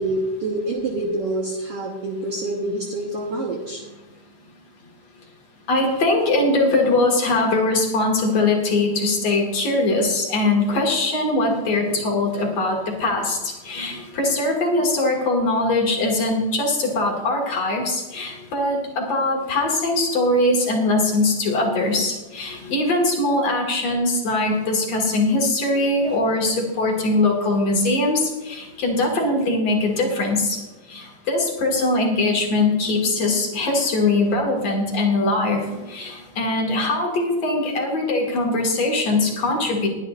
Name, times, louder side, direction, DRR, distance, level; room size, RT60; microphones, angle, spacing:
voice 1, 0.0-3.8, right 2 dB, 70° right, 1 dB, 1.4 m, -26 dB
voice 2, 5.7-13.4 13.6-28.2 28.5-30.6 30.9-39.9, left 2 dB, 50° left, 0 dB, 2.7 m, -21 dB
21.0 x 10.5 x 2.5 m, 1.1 s
omnidirectional pair, 4.2 m